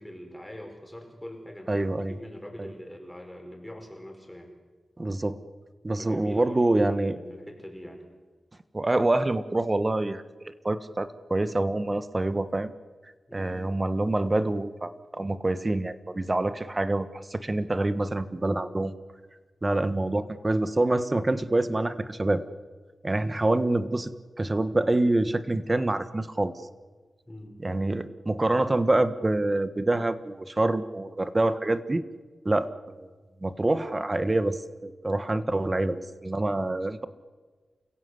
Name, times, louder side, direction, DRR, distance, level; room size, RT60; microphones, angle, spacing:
voice 1, 0.0-4.5 6.0-8.0 13.3-13.7 27.3-27.6, equal, 5° left, 2 dB, 5.4 m, -43 dB
voice 2, 1.7-2.2 2.6-2.7 5.0-5.4 5.8-7.2 8.7-12.7 13.3-18.9 19.6-22.4 23.0-24.1 24.4-26.5 27.6-32.0 32.4-33.1 33.4-37.1, right 2 dB, 30° right, 12 dB, 1.4 m, -26 dB
29.0 x 16.5 x 8.1 m, 1.4 s
cardioid pair, 60°, 0 cm